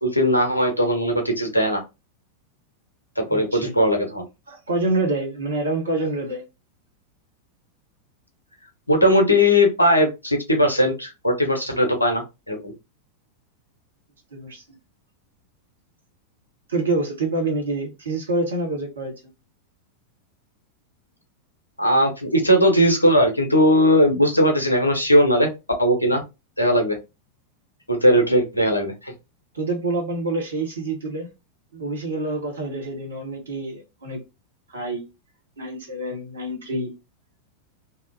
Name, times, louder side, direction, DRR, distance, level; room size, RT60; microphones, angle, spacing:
voice 1, 0.0-1.8 3.2-4.2 8.9-12.7 21.8-25.5 25.8-26.2 26.6-27.0 27.9-29.1, equal, 85° left, 0.7 m, -19 dB
voice 2, 3.3-3.7 4.5-6.4 14.3-14.8 16.7-19.1 29.5-31.3 31.7-34.2 34.7-35.1 35.6-36.9, right 2 dB, 70° right, 1.0 m, -27 dB
2.8 x 2.1 x 2.5 m
figure-of-eight pair, 90°, 0 cm